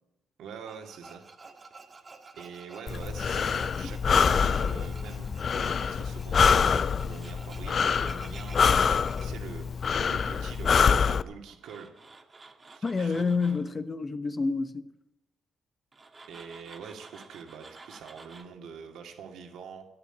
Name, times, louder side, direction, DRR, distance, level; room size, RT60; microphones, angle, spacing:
voice 1, 0.4-1.2 2.4-11.9 12.7-13.3 16.3-19.9, right 6 dB, 80° right, 2.2 m, -45 dB
Tools, 0.7-9.3 11.4-13.7 15.9-18.4, right 3 dB, 30° right, 1.7 m, -50 dB
Breathing, 2.9-11.2, left 6 dB, 50° left, 0.4 m, -25 dB
voice 2, 3.7-4.2 12.8-14.9, left 4 dB, 30° left, 0.9 m, -29 dB
13.0 x 9.2 x 8.9 m
cardioid pair, 90°, 0 cm